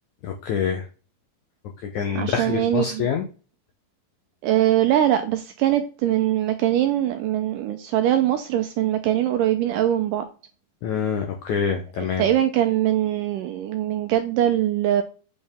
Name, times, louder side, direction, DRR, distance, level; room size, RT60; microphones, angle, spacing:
voice 1, 0.2-0.9 1.8-3.3 10.8-12.3, left 7 dB, 90° left, 1.7 m, -26 dB
voice 2, 2.2-3.2 4.4-10.2 12.2-15.0, right 12 dB, 80° right, 1.9 m, -22 dB
8.5 x 4.4 x 3.5 m
omnidirectional pair, 4.3 m